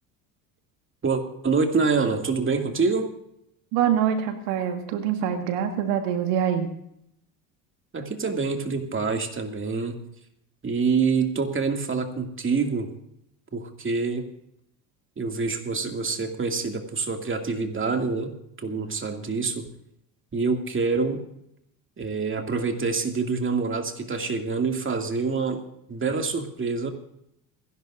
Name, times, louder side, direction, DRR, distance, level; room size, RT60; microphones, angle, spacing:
voice 1, 1.0-3.1 7.9-10.0 10.6-12.9 13.5-14.3 15.2-19.7 20.3-21.2 22.0-25.6 25.9-26.9, right 4 dB, 25° right, 4 dB, 2.4 m, -26 dB
voice 2, 3.7-6.7, right 9 dB, 70° right, 6 dB, 1.8 m, -25 dB
28.5 x 11.5 x 2.6 m, 0.75 s
hypercardioid pair, 80°, 47 cm